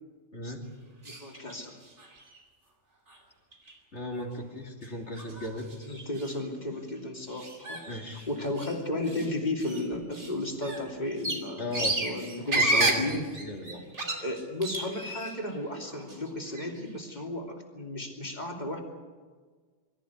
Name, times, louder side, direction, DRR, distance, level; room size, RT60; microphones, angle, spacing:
voice 1, 1.0-1.8 5.8-7.8 8.3-11.7 12.0-13.2 14.2-18.8, left 1 dB, 40° left, 1 dB, 3.0 m, -34 dB
sound 1, 1.0-1.6 1.8-2.4 3.1-3.2 3.5-3.7 4.2-4.3 4.8-4.9 5.1-6.4 7.3-8.8 9.1-9.3 9.6-15.5 15.8-16.8, right 2 dB, 85° right, 3.2 m, -32 dB
voice 2, 3.9-5.7 7.9-8.3 11.6-12.0 12.5-13.0 13.4-13.8, left 1 dB, 75° left, 1 dB, 3.3 m, -36 dB
23.5 x 14.0 x 9.6 m, 1.5 s
omnidirectional pair, 1.2 m